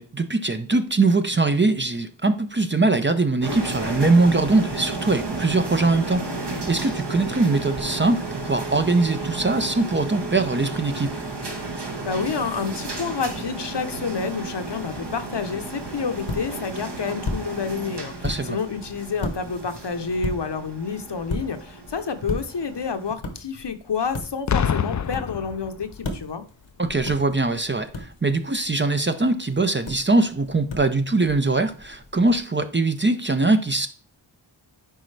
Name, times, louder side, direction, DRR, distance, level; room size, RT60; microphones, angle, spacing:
voice 1, 0.0-11.1 18.2-18.6 26.8-33.9, right 3 dB, 25° right, 0.6 m, -22 dB
sound 1, 3.4-23.1, right 2 dB, 60° right, 1.5 m, -33 dB
voice 2, 11.8-26.4, left 5 dB, 60° left, 0.9 m, -29 dB
sound 2, 15.6-32.4, left 2 dB, 80° left, 1.2 m, -37 dB
Boom, 24.5-26.2 27.1-27.4, left 7 dB, 40° left, 0.4 m, -26 dB
10.0 x 4.0 x 3.3 m
wide cardioid pair, 45°, 47 cm